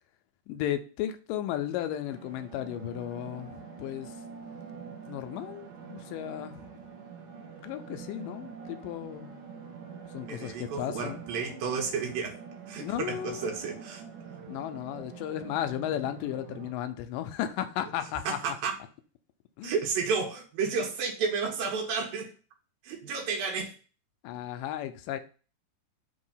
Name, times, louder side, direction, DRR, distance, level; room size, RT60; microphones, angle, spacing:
voice 1, 0.5-4.1 5.1-6.5 7.6-9.4 10.1-11.2 12.8-13.5 14.5-18.4 19.6-19.7 24.2-25.2, left 11 dB, 80° left, 2.2 m, -34 dB
sound 1, 2.1-16.7, right 6 dB, 70° right, 2.4 m, -46 dB
voice 2, 10.2-12.4 12.7-14.0 18.3-18.7 19.6-22.3 22.8-23.7, right 5 dB, 85° right, 3.1 m, -31 dB
6.3 x 2.9 x 5.5 m
omnidirectional pair, 4.0 m